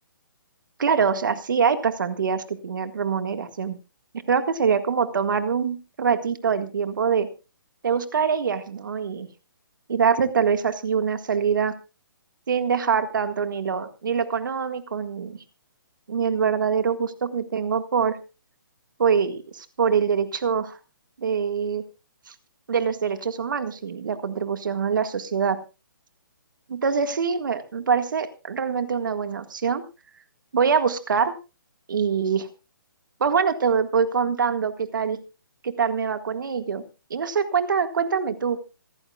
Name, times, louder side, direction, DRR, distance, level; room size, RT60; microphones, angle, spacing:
voice 1, 0.8-3.8 4.3-7.3 7.8-9.3 9.9-11.7 12.5-15.4 16.1-18.2 19.0-20.8 21.2-21.8 22.3-22.4 22.7-25.6 26.7-29.8 30.5-31.4 31.9-32.5 33.2-35.2 35.6-36.8 37.1-38.6, right 6 dB, 70° right, 9 dB, 1.8 m, -24 dB
26.5 x 9.3 x 2.4 m, 0.30 s
hypercardioid pair, 150°, 11 cm